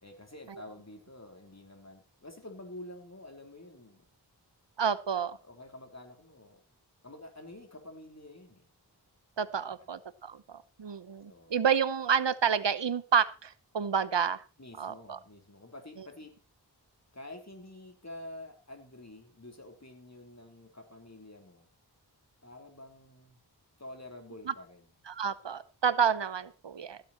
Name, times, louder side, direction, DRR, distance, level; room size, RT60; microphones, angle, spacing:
voice 1, 0.0-4.0 5.4-6.6 7.0-8.7 9.6-9.9 11.3-11.6 14.6-16.4 17.1-21.7 22.4-23.4 23.8-24.9, left 1 dB, 40° left, 5 dB, 3.6 m, -48 dB
voice 2, 4.8-5.4 9.4-14.4 14.8-15.2 25.1-27.0, right 7 dB, 85° right, 15 dB, 0.9 m, -29 dB
16.0 x 9.5 x 4.3 m, 0.32 s
wide cardioid pair, 45°, 42 cm